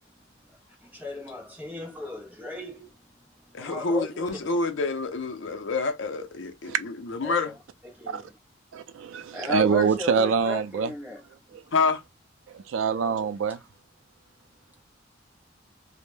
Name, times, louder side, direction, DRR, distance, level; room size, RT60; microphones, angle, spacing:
voice 1, 0.8-3.0 3.6-4.5 7.2-7.6 7.8-8.3 9.3-11.2, left 2 dB, 10° right, 0.7 m, -36 dB
voice 2, 3.5-7.5 11.7-12.0, left 3 dB, 65° left, 0.5 m, -27 dB
voice 3, 8.7-10.9 12.5-13.6, right 6 dB, 70° right, 0.3 m, -25 dB
2.1 x 2.0 x 3.0 m
head